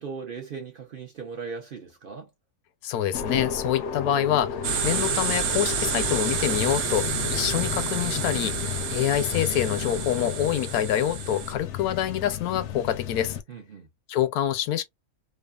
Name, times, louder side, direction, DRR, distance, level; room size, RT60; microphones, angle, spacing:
voice 1, 0.0-2.3 13.5-13.9, right 5 dB, 50° right, 0.7 m, -38 dB
voice 2, 2.8-13.4 14.1-14.8, left 11 dB, 85° left, 1.1 m, -26 dB
sound 1, 3.1-13.4, left 8 dB, 65° left, 0.8 m, -33 dB
sound 2, 4.6-11.5, right 7 dB, 80° right, 1.1 m, -30 dB
2.8 x 2.3 x 2.3 m
omnidirectional pair, 1.5 m